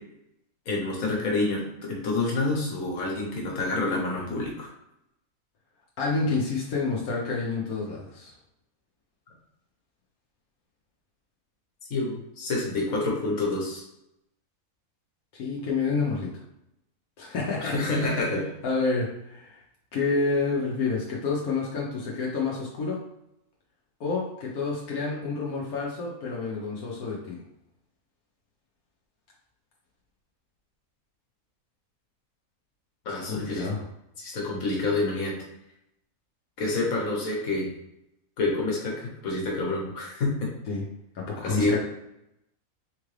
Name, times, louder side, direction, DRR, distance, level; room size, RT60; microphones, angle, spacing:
voice 1, 0.7-4.7 11.9-13.8 17.6-18.5 33.0-33.7 34.2-35.3 36.6-37.7 38.4-40.5 41.4-41.8, left 2 dB, 70° left, -2 dB, 1.6 m, -28 dB
voice 2, 6.0-8.3 15.3-16.3 17.2-17.7 18.6-19.6 19.9-23.0 24.0-27.4 33.2-33.8 40.7-40.8 41.1-41.8, left 4 dB, 90° left, -4 dB, 1.3 m, -28 dB
3.7 x 3.6 x 3.2 m, 0.84 s
omnidirectional pair, 1.5 m